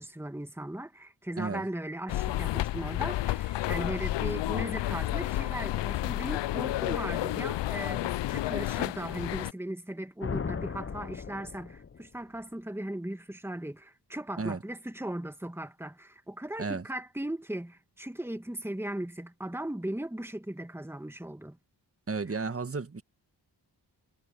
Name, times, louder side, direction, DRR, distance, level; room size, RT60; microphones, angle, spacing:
voice 1, 0.0-21.6 22.3-22.4, right 1 dB, 5° right, 2.1 m, -38 dB
sound 1, 2.1-9.5, left 15 dB, 80° left, 0.5 m, -31 dB
sound 2, 10.2-12.2, left 6 dB, 30° left, 0.7 m, -37 dB
voice 2, 22.1-23.0, right 4 dB, 30° right, 1.6 m, -33 dB
cardioid pair, 50°, 43 cm